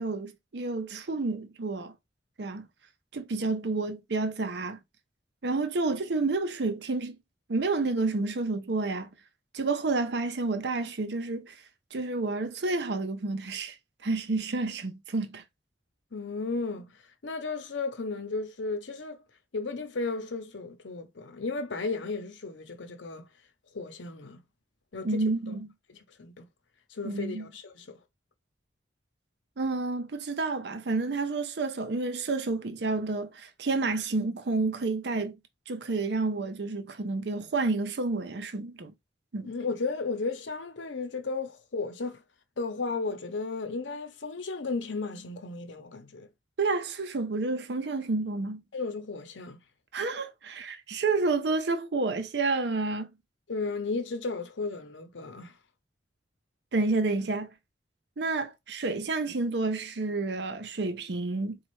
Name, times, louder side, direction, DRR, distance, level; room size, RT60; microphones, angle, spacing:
voice 1, 0.0-1.9 2.4-2.7 3.1-4.8 5.4-7.2 7.5-9.1 9.5-11.6 11.9-13.8 14.0-15.4 25.0-25.7 27.0-27.4 29.6-35.4 35.7-38.9 39.3-39.5 46.6-48.6 49.9-53.1 56.7-57.5 58.2-61.6, right 3 dB, 65° right, 0.6 m, -30 dB
voice 2, 16.1-17.0 17.2-19.2 19.5-23.3 23.7-24.4 24.9-25.2 25.9-26.5 26.9-28.0 39.4-42.2 42.6-46.3 48.7-49.6 53.5-55.5, left 3 dB, 85° left, 0.8 m, -34 dB
4.2 x 2.4 x 3.0 m
head